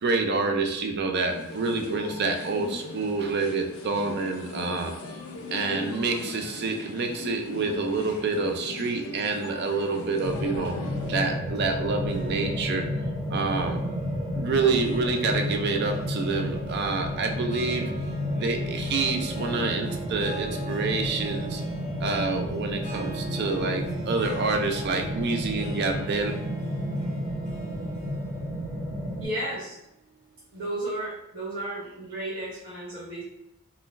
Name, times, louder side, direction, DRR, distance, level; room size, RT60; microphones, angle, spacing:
voice 1, 0.0-4.9 5.5-10.8 11.1-12.9 13.3-13.8 14.3-17.9 18.3-21.6 22.0-26.3, right 3 dB, 50° right, 4 dB, 0.4 m, -27 dB
sound 1, 1.3-11.2, left 2 dB, 75° left, 0.5 m, -39 dB
sound 2, 10.2-29.2, equal, 5° right, 0.6 m, -31 dB
Harp, 12.0-30.5, right 4 dB, 35° left, 1.0 m, -44 dB
voice 2, 29.2-29.8 30.5-33.2, right 1 dB, 70° right, -11 dB, 1.1 m, -33 dB
3.7 x 2.2 x 2.5 m, 0.85 s
head